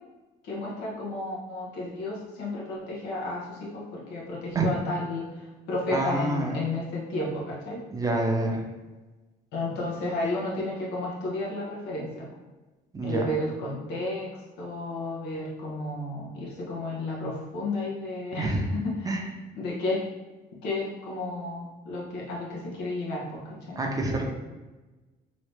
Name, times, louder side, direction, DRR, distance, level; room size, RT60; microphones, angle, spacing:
voice 1, 0.4-7.8 9.5-12.3 13.0-19.2 19.6-20.0 20.6-23.8, left 2 dB, 85° left, -4 dB, 1.1 m, -32 dB
voice 2, 5.9-6.5 7.9-8.6 12.9-13.3 18.4-18.7 19.1-19.2 23.8-24.2, right 2 dB, 20° right, 1 dB, 0.6 m, -27 dB
3.1 x 2.7 x 3.2 m, 1.2 s
cardioid pair, 110°, 17 cm